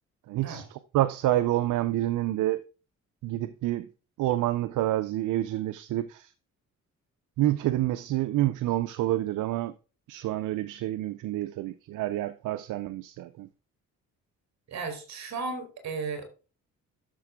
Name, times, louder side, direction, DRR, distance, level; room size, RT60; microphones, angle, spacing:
voice 1, 0.3-0.6 0.9-2.6 3.2-3.9 4.2-6.3 7.4-9.7 10.1-13.5, right 15 dB, 85° right, 0.7 m, -28 dB
voice 2, 14.7-16.3, right 4 dB, 65° right, 3.8 m, -35 dB
12.5 x 6.8 x 3.7 m
cardioid pair, 90°, 30 cm